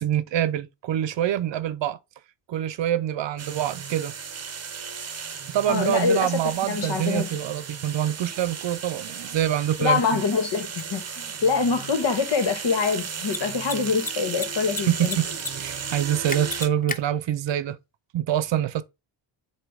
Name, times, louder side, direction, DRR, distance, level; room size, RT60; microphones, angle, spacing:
voice 1, 0.0-2.0 2.5-4.1 5.5-10.2 14.9-15.3 15.6-17.8 18.1-18.8, right 11 dB, 60° right, 0.7 m, -25 dB
sound 1, 3.4-16.7, right 6 dB, 30° right, 0.9 m, -35 dB
voice 2, 5.7-7.3 9.8-15.2, left 5 dB, 60° left, 1.8 m, -25 dB
Mechanisms, 10.8-10.9 13.2-13.4 13.6-13.7 14.0-14.8 15.0-15.5 15.8-15.9 16.3-17.0, left 3 dB, 15° left, 0.7 m, -30 dB
7.8 x 2.9 x 5.0 m
cardioid pair, 85°, 49 cm